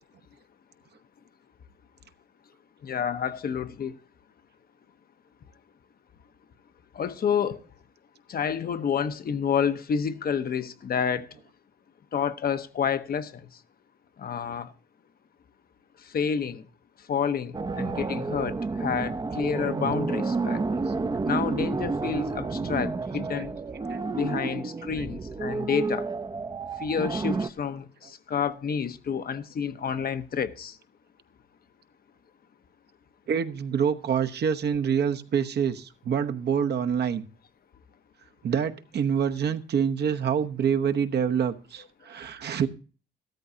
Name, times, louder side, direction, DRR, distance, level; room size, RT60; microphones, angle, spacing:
voice 1, 2.8-3.9 6.9-7.6 8.3-11.3 12.1-13.5 14.2-14.7 16.1-16.6 17.1-20.6 21.3-23.6 24.1-26.1 26.8-30.7, left 7 dB, 50° left, 0.9 m, -29 dB
sound 1, 17.5-27.5, right 3 dB, 20° right, 0.6 m, -30 dB
voice 2, 33.3-37.3 38.4-42.7, right 7 dB, 55° right, 1.0 m, -26 dB
14.0 x 13.0 x 2.7 m
cardioid pair, 90°, 20 cm